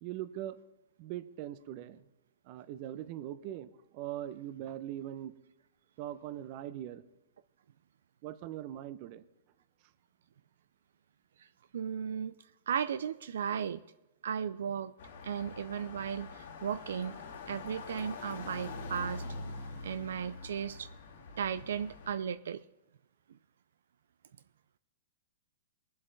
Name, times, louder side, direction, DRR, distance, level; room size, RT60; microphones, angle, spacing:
voice 1, 0.0-0.6 1.0-2.0 2.5-5.3 6.0-7.0 8.2-9.2, right 12 dB, 45° right, 14 dB, 0.7 m, -41 dB
voice 2, 11.7-12.3 12.7-13.8 14.2-14.9 15.2-17.2 17.5-19.2 19.8-20.9 21.4-22.6, right 7 dB, 80° right, 13 dB, 0.3 m, -35 dB
sound 1, 15.0-22.1, left 3 dB, 70° left, 2.3 m, -44 dB
20.0 x 7.6 x 4.0 m, 0.98 s
hypercardioid pair, 140°, 0 cm